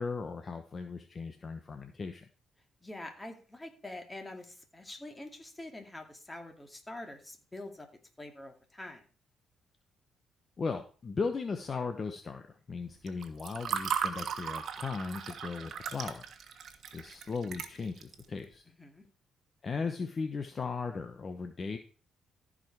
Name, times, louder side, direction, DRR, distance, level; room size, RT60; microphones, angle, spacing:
voice 1, 0.0-2.2 10.6-12.4 12.7-16.2 16.9-18.6 19.6-21.8, left 4 dB, 40° left, 6 dB, 1.0 m, -37 dB
voice 2, 2.8-7.9 8.2-9.0 18.8-19.0, left 1 dB, 15° left, 3 dB, 2.4 m, -45 dB
Water / Fill (with liquid), 13.1-18.2, right 7 dB, 60° right, 1.3 m, -37 dB
14.5 x 5.1 x 4.7 m, 0.38 s
cardioid pair, 90°, 0 cm